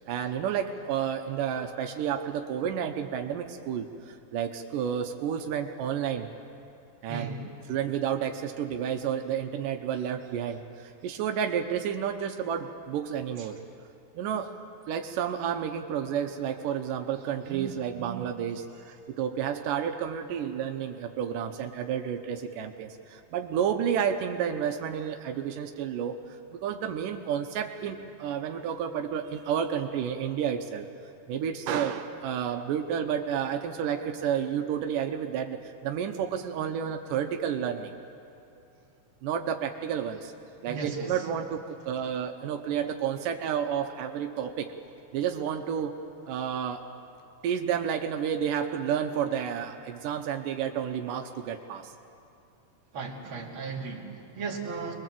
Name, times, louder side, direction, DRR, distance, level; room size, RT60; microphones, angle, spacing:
voice 1, 0.1-6.3 7.0-7.4 7.7-13.6 14.2-14.5 14.9-30.9 31.3-37.9 38.6-38.7 39.2-40.3 40.6-44.7 45.1-46.0 46.3-46.9 47.4-51.9, right 8 dB, 85° right, 5 dB, 2.6 m, -31 dB
voice 2, 7.1-7.5 13.4-13.5 40.7-41.2 52.9-54.9, right 4 dB, 40° right, -2 dB, 3.1 m, -36 dB
26.0 x 21.5 x 7.6 m, 2.6 s
omnidirectional pair, 3.7 m